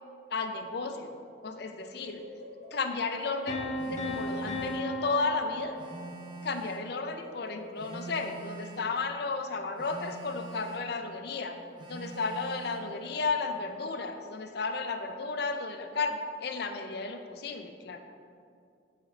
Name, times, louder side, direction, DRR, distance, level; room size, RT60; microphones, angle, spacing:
voice 1, 0.3-1.1 1.4-2.2 2.7-5.8 6.4-11.6 11.9-18.0, left 4 dB, 55° left, 7 dB, 0.5 m, -33 dB
sound 1, 1.8-6.8 7.2-11.6 12.1-13.6 14.6-15.0, left 1 dB, 50° right, 0.9 m, -51 dB
sound 2, 3.5-6.4, left 1 dB, 35° left, 0.9 m, -36 dB
Telephone, 3.8-4.9 5.8-6.9 7.8-8.9 9.8-10.9 11.8-12.9, right 3 dB, 25° right, 0.8 m, -44 dB
8.2 x 4.0 x 4.9 m, 2.4 s
head